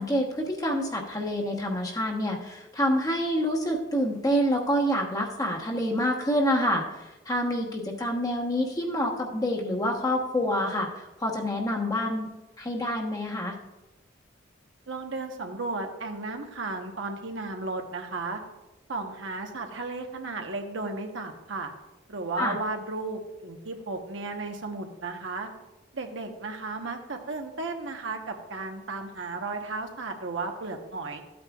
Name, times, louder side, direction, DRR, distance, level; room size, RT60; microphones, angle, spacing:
voice 1, 0.0-6.8 7.3-12.3 12.6-13.6 22.4-22.6, equal, 20° left, 0 dB, 1.1 m, -27 dB
voice 2, 14.9-18.4 18.9-21.7 22.1-25.5 25.9-31.2, right 3 dB, 85° right, 4 dB, 1.1 m, -34 dB
13.5 x 8.7 x 2.4 m, 1.0 s
head